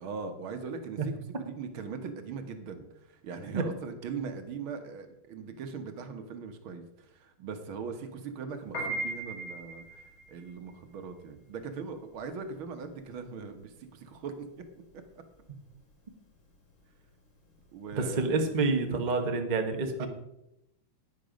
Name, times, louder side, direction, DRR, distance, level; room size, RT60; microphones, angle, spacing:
voice 1, 0.0-14.7 14.9-15.0 17.7-18.2 20.0-20.1, right 5 dB, 75° right, 7 dB, 1.9 m, -40 dB
Piano, 8.6-19.0, right 2 dB, 65° left, 4.0 m, -41 dB
voice 2, 18.0-20.1, right 3 dB, 25° right, 4 dB, 1.0 m, -28 dB
11.0 x 9.7 x 5.2 m, 0.84 s
omnidirectional pair, 2.3 m